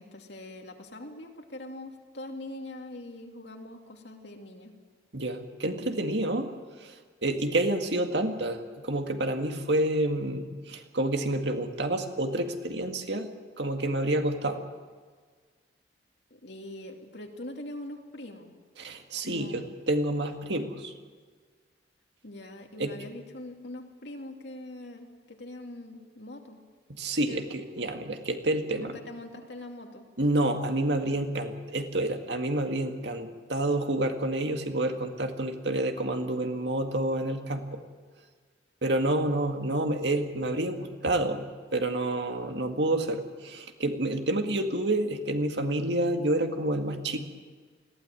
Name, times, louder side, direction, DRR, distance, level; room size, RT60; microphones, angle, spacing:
voice 1, 0.0-4.7 16.3-18.5 19.2-19.7 22.2-26.6 27.3-27.4 29.1-30.1, left 1 dB, 65° left, 3 dB, 2.6 m, -43 dB
voice 2, 5.1-6.5 6.8-6.9 7.2-13.3 13.6-14.6 18.8-20.9 22.8-23.0 26.9-29.0 30.2-37.8 38.8-41.4 41.7-47.2, right 1 dB, 65° right, 5 dB, 2.0 m, -29 dB
21.0 x 16.0 x 9.9 m, 1.5 s
head